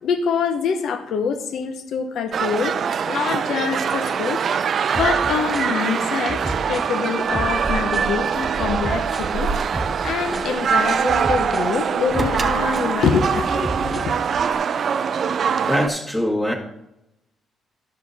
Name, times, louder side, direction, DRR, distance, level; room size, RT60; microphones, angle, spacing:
voice 1, 0.0-2.8 3.0-4.4 4.9-9.5 10.0-14.1, left 6 dB, 75° left, 8 dB, 0.9 m, -25 dB
sound 1, 2.3-15.9, right 7 dB, 55° right, 0.4 m, -23 dB
sound 2, 4.9-14.5, right 1 dB, ahead, 2.2 m, -33 dB
Keys jangling, 7.2-14.2, right 2 dB, 30° right, 1.3 m, -33 dB
voice 2, 15.6-16.5, equal, 15° left, -3 dB, 1.8 m, -22 dB
10.5 x 6.4 x 4.2 m, 0.87 s
cardioid pair, 90°, 0 cm